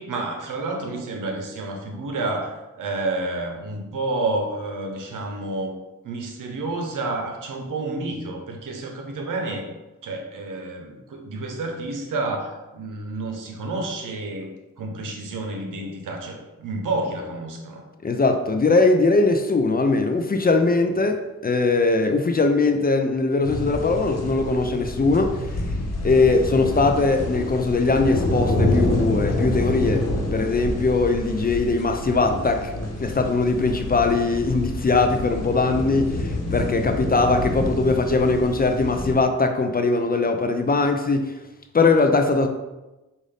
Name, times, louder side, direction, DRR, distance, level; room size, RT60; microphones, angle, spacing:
voice 1, 0.0-5.8 6.0-9.7 10.0-14.5 14.8-17.8, right 2 dB, 75° right, 0.9 m, -30 dB
voice 2, 18.0-25.6 26.0-32.7 33.0-41.3 41.7-42.5, left 3 dB, 30° left, 0.5 m, -21 dB
sound 1, 23.4-39.1, left 1 dB, 50° left, 1.1 m, -27 dB
5.2 x 2.6 x 3.4 m
cardioid pair, 55°, 32 cm